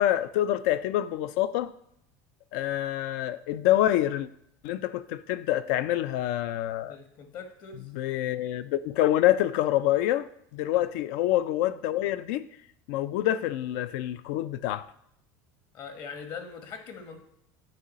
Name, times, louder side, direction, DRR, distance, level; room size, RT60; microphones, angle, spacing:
voice 1, 0.0-1.7 2.5-4.3 4.6-7.0 7.9-12.6 12.9-14.9, left 13 dB, 75° left, 0.4 m, -26 dB
voice 2, 6.8-7.9 10.7-10.8 15.7-17.2, left 5 dB, 50° left, 1.2 m, -42 dB
9.0 x 3.1 x 4.1 m
supercardioid pair, 100°, 9 cm